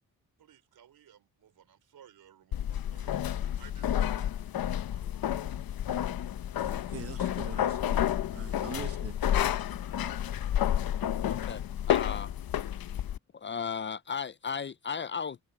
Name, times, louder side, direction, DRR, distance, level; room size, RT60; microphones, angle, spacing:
voice 1, 0.4-5.1 8.3-8.5, right 9 dB, 85° right, 4.0 m, -59 dB
sound 1, 2.5-13.2, left 11 dB, 75° left, 0.9 m, -30 dB
voice 2, 6.7-8.0 8.3-9.2, right 6 dB, 40° right, 1.3 m, -43 dB
voice 3, 11.2-12.3 13.3-15.4, left 6 dB, 35° left, 0.4 m, -35 dB
wide cardioid pair, 125°, 35 cm